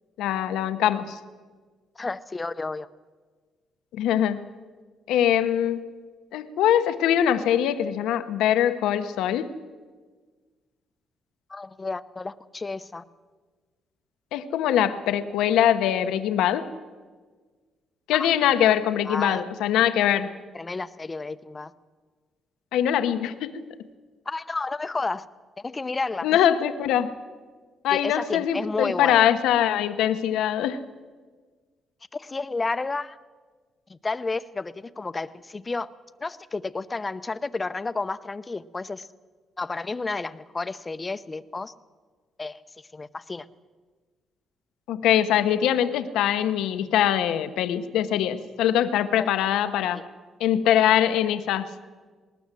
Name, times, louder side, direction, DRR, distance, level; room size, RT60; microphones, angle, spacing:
voice 1, 0.2-1.2 3.9-4.5 5.1-5.8 6.3-9.5 14.3-16.7 18.1-20.3 22.7-23.6 26.2-27.1 27.8-30.8 44.9-50.0 50.4-51.7, left 10 dB, 90° left, 11 dB, 1.1 m, -23 dB
voice 2, 2.0-2.9 11.5-13.0 18.1-18.3 19.0-19.4 20.5-21.7 24.3-25.3 25.6-26.3 27.9-29.2 32.1-33.2 33.9-35.9 36.2-39.1 39.6-41.7 42.4-42.6 42.9-43.5 49.2-49.3 49.9-50.0, left 3 dB, 25° left, 14 dB, 0.8 m, -31 dB
19.5 x 19.5 x 7.6 m, 1.5 s
cardioid pair, 90°, 0 cm